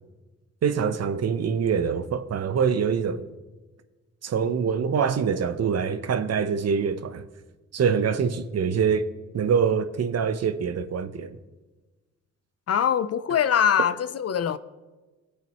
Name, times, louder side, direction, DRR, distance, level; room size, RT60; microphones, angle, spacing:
voice 1, 0.6-3.3 4.2-7.3 7.7-9.1 9.3-11.3, right 6 dB, 55° right, 0.8 m, -24 dB
voice 2, 12.7-14.6, left 8 dB, 50° left, 0.6 m, -23 dB
19.0 x 8.1 x 3.0 m
supercardioid pair, 55°, 31 cm